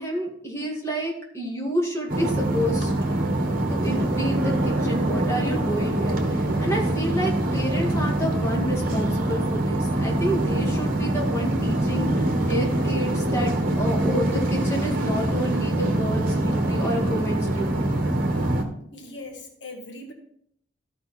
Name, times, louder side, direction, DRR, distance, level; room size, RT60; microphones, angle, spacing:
voice 1, 0.0-2.9 3.7-18.0, equal, 15° left, -3 dB, 2.0 m, -29 dB
sound 1, 2.1-18.6, right 1 dB, 50° right, 1.3 m, -24 dB
voice 2, 18.9-20.1, left 2 dB, 70° left, 3 dB, 1.5 m, -40 dB
13.5 x 5.1 x 4.3 m, 0.69 s
head